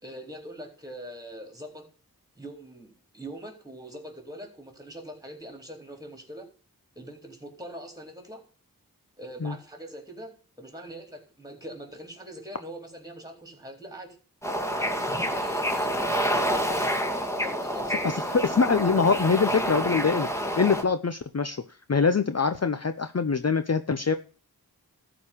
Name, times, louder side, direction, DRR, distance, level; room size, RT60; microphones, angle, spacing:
voice 1, 0.0-1.9 2.4-6.5 7.0-8.4 9.2-14.2 14.7-16.9 17.4-18.5, right 1 dB, 10° right, 3 dB, 4.0 m, -42 dB
Bird / Ocean, 14.4-20.8, equal, 10° left, 2.4 m, -28 dB
voice 2, 18.0-20.3 20.6-21.6 21.9-24.1, left 5 dB, 45° left, 10 dB, 0.8 m, -24 dB
13.5 x 5.0 x 8.6 m, 0.38 s
wide cardioid pair, 50°, 37 cm